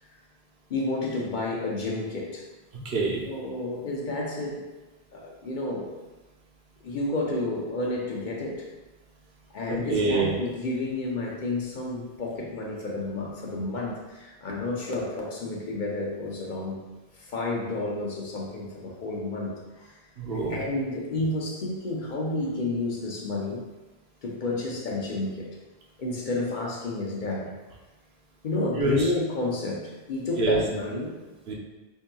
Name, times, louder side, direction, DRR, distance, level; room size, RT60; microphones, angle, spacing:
voice 1, 0.7-2.4 3.3-4.6 5.1-5.9 6.8-8.7 9.5-16.8 17.1-20.0 20.5-23.7 24.2-25.5 26.0-27.5 28.4-31.2, left 2 dB, 55° left, -2 dB, 0.7 m, -31 dB
voice 2, 2.8-3.2 9.7-10.3 20.2-20.6 28.7-29.1 30.4-30.6 31.5-31.6, right 3 dB, 80° right, -3 dB, 1.1 m, -25 dB
5.5 x 2.7 x 2.2 m, 1.2 s
omnidirectional pair, 1.0 m